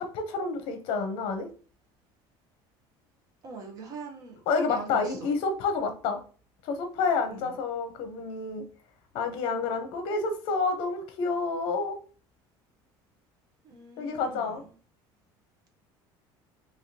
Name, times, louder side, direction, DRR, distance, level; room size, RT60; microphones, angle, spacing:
voice 1, 0.0-1.5 4.5-6.2 6.6-8.6 9.1-12.0 14.0-14.6, left 4 dB, 60° left, 6 dB, 0.8 m, -29 dB
voice 2, 3.4-4.4 4.7-5.3 7.3-7.6 13.6-14.7, right 4 dB, 35° right, 2 dB, 1.0 m, -43 dB
3.5 x 2.7 x 2.8 m, 0.39 s
cardioid pair, 160°, 10 cm